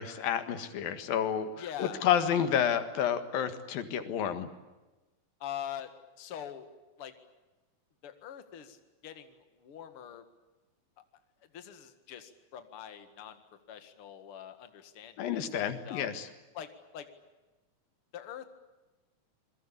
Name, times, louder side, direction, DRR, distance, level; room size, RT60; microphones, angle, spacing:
voice 1, 0.0-4.5 15.2-16.3, left 9 dB, 90° left, 10 dB, 3.5 m, -30 dB
voice 2, 1.6-2.1 5.4-6.7 7.0-7.1 8.0-10.2 11.5-13.4 13.7-16.1 16.5-17.1 18.1-18.4, left 10 dB, 45° left, 9 dB, 2.4 m, -44 dB
28.0 x 22.0 x 8.6 m, 1.1 s
omnidirectional pair, 4.0 m